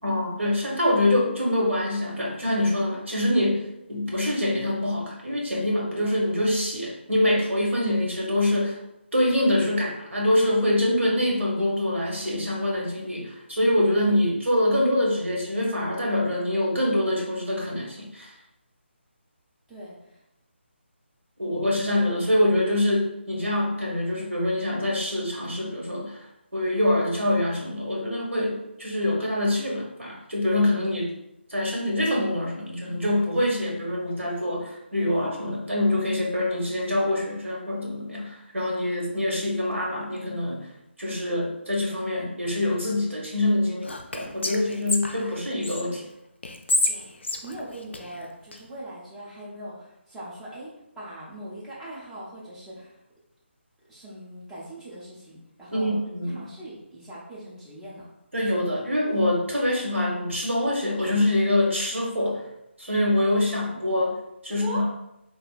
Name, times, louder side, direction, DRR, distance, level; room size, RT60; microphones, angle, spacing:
voice 1, 0.0-8.8 9.1-18.3 21.4-26.2 26.5-31.1 31.5-40.7 41.0-46.0 55.7-56.4 58.3-62.4 62.8-64.2 64.4-64.8, left 1 dB, 80° right, -2 dB, 1.0 m, -25 dB
voice 2, 19.7-20.2 46.9-50.7 51.0-53.0 53.9-56.0 56.3-58.1 64.4-64.8, right 1 dB, 5° right, -9 dB, 0.4 m, -40 dB
Whispering, 43.8-45.8 46.4-48.6, left 1 dB, 65° left, 0.4 m, -29 dB
3.4 x 2.1 x 2.4 m, 0.85 s
figure-of-eight pair, 150°, 7 cm